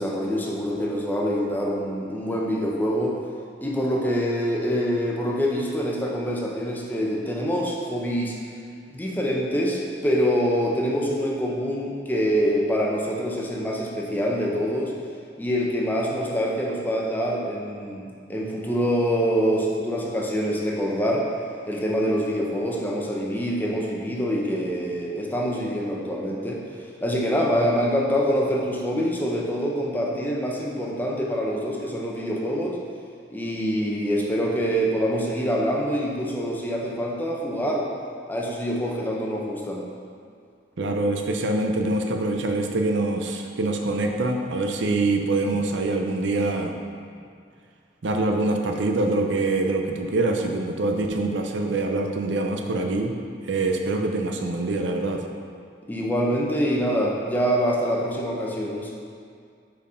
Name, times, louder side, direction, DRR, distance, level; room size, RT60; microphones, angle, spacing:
voice 1, 0.0-3.2 3.6-8.4 8.9-14.9 15.4-21.3 21.7-32.8 33.3-37.9 38.3-39.8 55.9-58.9, equal, 10° left, -2 dB, 0.7 m, -25 dB
voice 2, 40.8-46.8 48.0-53.2 53.4-55.2, right 2 dB, 75° right, 3 dB, 0.6 m, -24 dB
5.4 x 4.6 x 4.9 m, 2.3 s
head